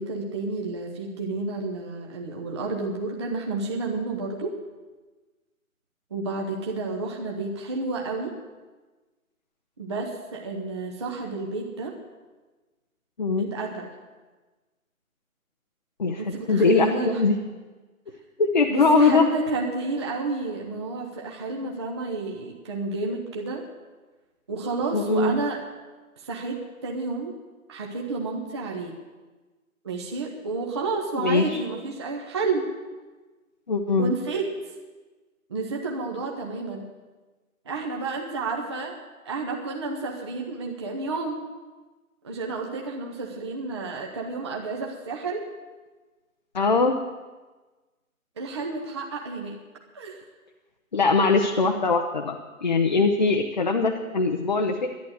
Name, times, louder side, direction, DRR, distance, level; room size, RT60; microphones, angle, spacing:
voice 1, 0.0-4.6 6.1-8.4 9.8-12.0 13.4-13.9 16.2-17.3 18.7-23.7 24.5-25.6 26.2-27.3 27.7-29.0 29.8-32.7 34.0-34.5 35.5-36.8 37.6-39.0 39.2-41.4 42.2-45.5 48.4-49.6 49.9-50.2, right 3 dB, 20° right, 0 dB, 0.8 m, -30 dB
voice 2, 16.0-17.4 18.4-19.2 24.9-25.4 31.2-31.6 33.7-34.1 46.5-46.9 50.9-52.4 52.6-54.9, left 4 dB, 30° left, 3 dB, 0.7 m, -21 dB
11.5 x 10.5 x 7.8 m, 1.3 s
figure-of-eight pair, 155°, 43 cm